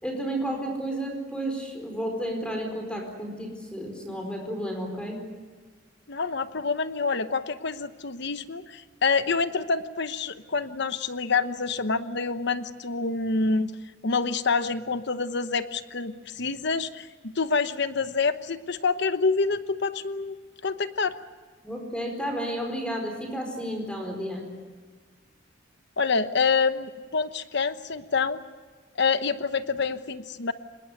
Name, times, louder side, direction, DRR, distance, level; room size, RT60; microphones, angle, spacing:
voice 1, 0.0-5.2 21.6-24.5, right 1 dB, 5° left, 3 dB, 4.6 m, -32 dB
voice 2, 6.1-13.7 14.0-20.4 20.6-21.2 26.0-28.4 29.0-30.5, left 4 dB, 60° left, 11 dB, 1.0 m, -27 dB
25.0 x 21.0 x 8.1 m, 1.4 s
head